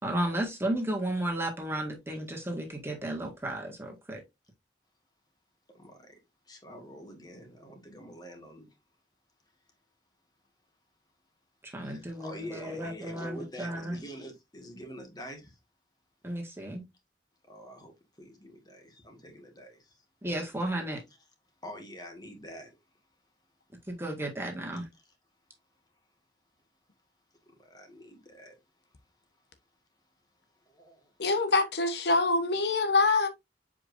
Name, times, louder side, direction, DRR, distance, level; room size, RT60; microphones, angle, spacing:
voice 1, 0.0-4.2 11.6-14.0 16.2-16.8 20.2-21.0 23.9-24.9, right 1 dB, 15° right, 1.7 m, -33 dB
voice 2, 5.7-6.1 6.5-8.7 11.8-15.6 17.5-17.9 18.2-20.0 21.6-22.7 27.6-28.5 30.6-31.1, equal, 25° left, 1.8 m, -46 dB
voice 3, 31.2-33.3, left 3 dB, 70° left, 1.0 m, -25 dB
7.4 x 5.0 x 2.6 m
head